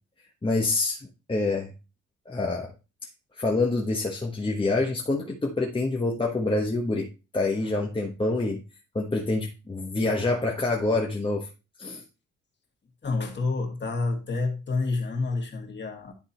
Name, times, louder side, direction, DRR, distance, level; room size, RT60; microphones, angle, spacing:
voice 1, 0.4-1.7 2.3-2.7 3.4-7.1 7.3-8.6 8.9-11.5 11.8-12.0, left 2 dB, 15° left, 1.3 m, -26 dB
voice 2, 13.0-16.1, left 3 dB, 35° left, 2.4 m, -28 dB
11.0 x 3.8 x 4.4 m
cardioid pair, 90°, 30 cm